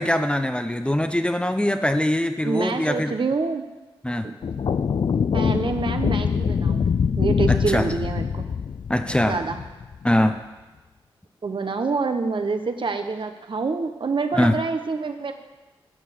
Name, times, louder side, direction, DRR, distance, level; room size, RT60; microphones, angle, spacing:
voice 1, 0.0-3.1 4.0-4.3 7.5-7.9 8.9-9.4 10.0-10.4 14.3-14.6, left 1 dB, 10° left, 8 dB, 0.8 m, -22 dB
voice 2, 2.4-3.6 4.2-4.3 5.3-8.5 9.2-9.6 11.4-15.3, right 4 dB, 55° right, 7 dB, 1.0 m, -27 dB
sound 1, 4.4-10.0, left 6 dB, 55° left, 0.4 m, -24 dB
12.0 x 4.6 x 8.3 m, 1.2 s
cardioid pair, 45°, 10 cm